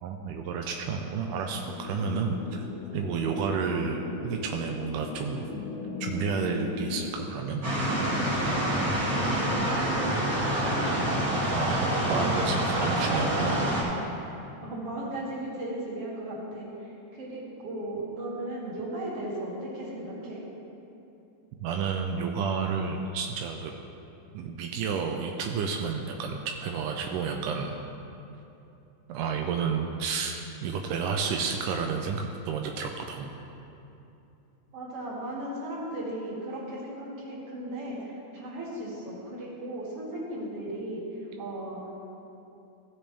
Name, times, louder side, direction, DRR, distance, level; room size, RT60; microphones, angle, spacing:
voice 1, 0.0-2.7 2.9-5.5 6.0-7.6 11.5-13.6 21.6-23.7 24.3-27.8 29.1-30.4 30.6-33.3, right 5 dB, 85° right, 2 dB, 1.8 m, -31 dB
sound 1, 1.6-7.1, left 4 dB, 90° left, 3.0 m, -37 dB
sound 2, 7.6-13.8, right 1 dB, 30° right, 2.1 m, -27 dB
voice 2, 9.2-10.9 12.1-12.3 12.7-13.8 14.6-20.4 34.7-41.0 41.4-41.8, right 1 dB, 45° right, -6 dB, 2.6 m, -36 dB
15.5 x 7.1 x 3.3 m, 2.9 s
omnidirectional pair, 4.3 m